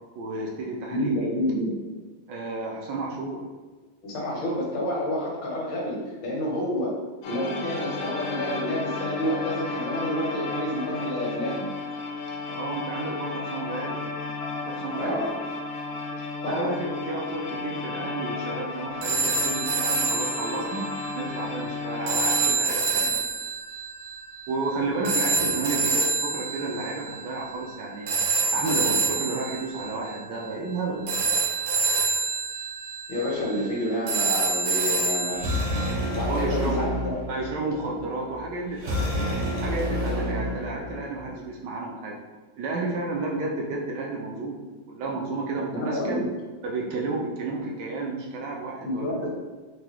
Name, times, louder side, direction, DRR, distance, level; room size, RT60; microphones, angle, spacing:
voice 1, 0.2-1.2 2.3-3.4 12.5-14.0 14.7-15.2 16.4-23.2 24.5-28.2 28.5-31.1 36.2-36.9 37.3-42.2 42.6-44.6 44.9-46.2 46.6-49.2, right 3 dB, 75° right, -1 dB, 1.1 m, -31 dB
voice 2, 0.9-1.8 4.0-7.0 7.3-11.7 15.0-15.4 16.4-16.8 33.1-35.7 36.1-37.2 45.7-46.3 48.8-49.3, left 1 dB, 75° left, -3 dB, 1.7 m, -29 dB
sound 1, 7.2-22.5, left 3 dB, 90° left, 0.7 m, -33 dB
sound 2, 19.0-35.9, right 4 dB, 90° right, 1.5 m, -27 dB
sound 3, 35.3-41.3, left 1 dB, 50° right, 0.9 m, -29 dB
4.7 x 2.2 x 2.9 m, 1.3 s
omnidirectional pair, 2.1 m